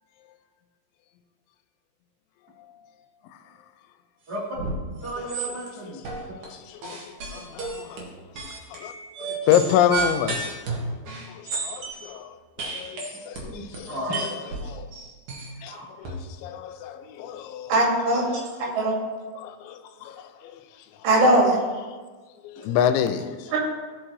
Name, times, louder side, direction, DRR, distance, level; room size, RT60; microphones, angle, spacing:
voice 1, 4.3-4.6 5.0-6.0 13.0-13.2 13.4-14.3, equal, 25° right, 3.4 m, -33 dB
sound 1, 4.5-4.8 5.0-5.7 6.0-6.5 6.8-12.1 12.6-16.1, right 3 dB, 55° right, 2.5 m, -32 dB
voice 2, 6.5-8.0 8.7-8.9 9.2-10.6 11.3-14.0 14.7-14.9 15.6-17.7 18.3-18.7 19.4-20.6 22.4-23.5, left 9 dB, 85° left, 2.9 m, -28 dB
voice 3, 17.7-18.9 21.0-21.6 23.5-23.6, right 1 dB, 70° right, 4.3 m, -20 dB
15.5 x 6.1 x 3.2 m
omnidirectional pair, 5.2 m